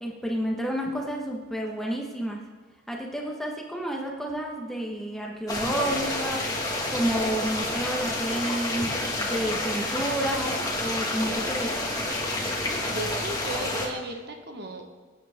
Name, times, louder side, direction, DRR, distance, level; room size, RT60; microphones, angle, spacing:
voice 1, 0.0-2.4 2.9-11.8, right 1 dB, ahead, -1 dB, 1.5 m, -30 dB
sound 1, 5.5-13.9, left 1 dB, 20° left, 2.0 m, -29 dB
voice 2, 12.9-14.9, right 1 dB, 55° right, 4 dB, 1.4 m, -35 dB
25.0 x 9.3 x 3.7 m, 1.4 s
head